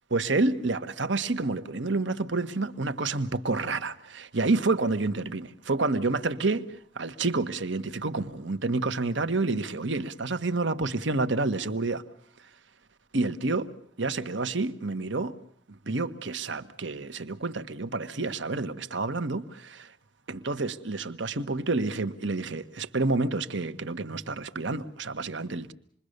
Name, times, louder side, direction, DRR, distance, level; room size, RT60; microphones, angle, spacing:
voice 1, 0.1-6.6 6.9-12.0 13.1-13.7 14.0-15.3 15.9-19.9 20.3-25.7, right 3 dB, 65° right, 1.3 m, -29 dB
27.5 x 22.0 x 6.7 m
head